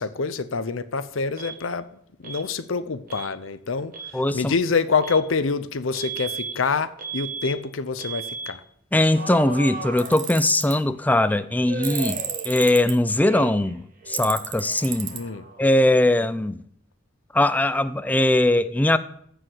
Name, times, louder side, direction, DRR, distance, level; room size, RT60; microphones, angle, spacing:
voice 1, 0.0-1.9 2.2-8.6 15.1-15.5, left 4 dB, 90° left, 0.7 m, -26 dB
Alarm, 1.4-1.6 2.2-2.5 3.1-3.3 3.8-4.2 5.0-5.2 5.9-6.6 7.0-7.6 8.0-8.5 9.1-10.7 11.7-12.9 13.2-13.8 14.0-15.7, right 4 dB, 45° right, 1.6 m, -35 dB
voice 2, 4.1-4.5 8.9-12.2 12.4-13.8 14.1-15.1 15.6-16.6 17.3-19.0, left 1 dB, 10° left, 0.4 m, -20 dB
Tools, 10.0-10.7 11.8-12.9 14.1-15.2, right 10 dB, 70° right, 1.3 m, -32 dB
14.5 x 4.9 x 7.8 m
head